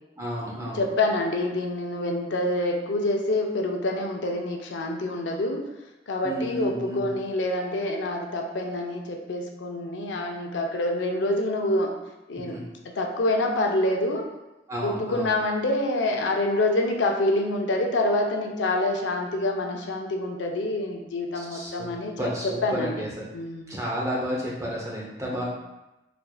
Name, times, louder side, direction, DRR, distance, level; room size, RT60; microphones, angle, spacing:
voice 1, 0.2-0.8 6.2-7.1 12.4-12.6 14.7-15.4 21.3-21.9 22.2-23.1 23.7-25.4, equal, 15° right, -4 dB, 0.6 m, -31 dB
voice 2, 0.7-5.7 6.1-11.9 12.3-12.6 12.8-14.3 14.8-23.0 23.3-23.7 25.3-25.4, left 1 dB, 85° left, 2 dB, 0.5 m, -26 dB
4.4 x 2.5 x 2.3 m, 1.0 s
head